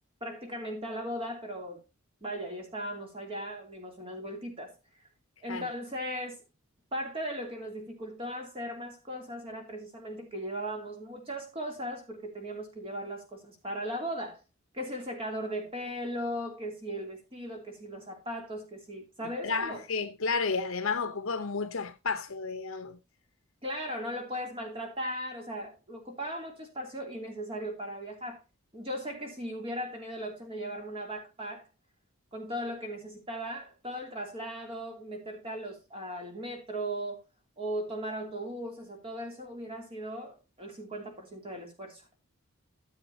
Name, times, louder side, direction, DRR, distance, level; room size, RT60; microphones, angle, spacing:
voice 1, 0.2-1.8 2.2-4.8 5.4-6.4 6.9-14.4 14.7-19.8 23.6-28.4 28.7-31.7 32.3-37.2 37.6-42.0, equal, 25° right, 2.8 m, -37 dB
voice 2, 19.2-23.0, left 4 dB, 65° left, 0.8 m, -32 dB
14.0 x 7.3 x 2.7 m
head